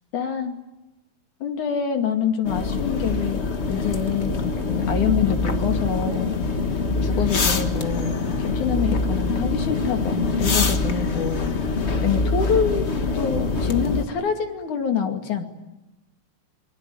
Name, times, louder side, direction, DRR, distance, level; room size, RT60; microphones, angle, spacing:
voice 1, 0.1-0.6 1.4-3.4 3.7-6.6 7.0-11.6 12.0-15.4, left 7 dB, 90° left, 5 dB, 3.9 m, -26 dB
sound 1, 2.4-14.1, left 3 dB, 40° left, 1.0 m, -24 dB
27.0 x 24.0 x 9.3 m, 1.0 s
omnidirectional pair, 3.4 m